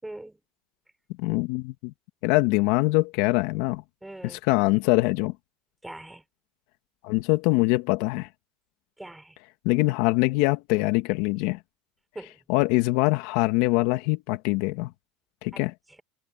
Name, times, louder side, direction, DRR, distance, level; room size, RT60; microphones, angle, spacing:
voice 1, 0.0-0.4 4.0-4.4 5.8-6.2 9.0-9.4 12.1-12.4 15.5-16.0, right 1 dB, 5° right, 5.1 m, -42 dB
voice 2, 1.2-1.9 2.2-3.8 4.5-5.3 7.0-8.3 9.7-11.6 12.5-14.9 15.4-15.7, left 22 dB, 70° left, 1.8 m, -23 dB
supercardioid pair, 105°, 0 cm